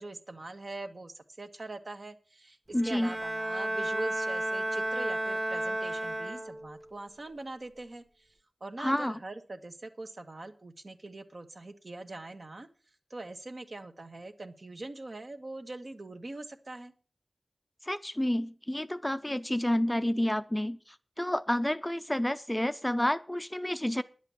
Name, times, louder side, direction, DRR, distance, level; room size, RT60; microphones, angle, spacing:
voice 1, 0.0-8.3 8.6-16.9, right 2 dB, 55° right, 6 dB, 1.4 m, -43 dB
voice 2, 2.7-3.1 8.8-9.2 17.9-20.8 21.2-24.0, left 1 dB, 10° left, 11 dB, 0.5 m, -29 dB
Bowed string instrument, 2.7-6.8, right 1 dB, 15° right, 1.1 m, -33 dB
10.5 x 8.1 x 6.9 m, 0.39 s
wide cardioid pair, 75°, 0 cm